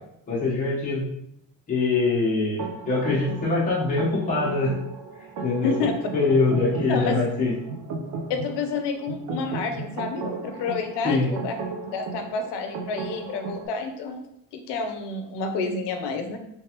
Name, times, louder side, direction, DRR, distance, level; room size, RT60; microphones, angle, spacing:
voice 1, 0.3-1.0 1.7-4.7 5.4-5.7 6.1-7.5 11.0-11.3, left 3 dB, 20° left, -7 dB, 1.0 m, -23 dB
sound 1, 2.6-13.7, right 4 dB, 50° right, 0.6 m, -35 dB
voice 2, 6.9-7.2 8.3-11.5 11.9-14.2 14.5-16.4, left 4 dB, 75° left, 6 dB, 0.7 m, -29 dB
3.3 x 3.2 x 2.9 m, 0.77 s
cardioid pair, 175°, 42 cm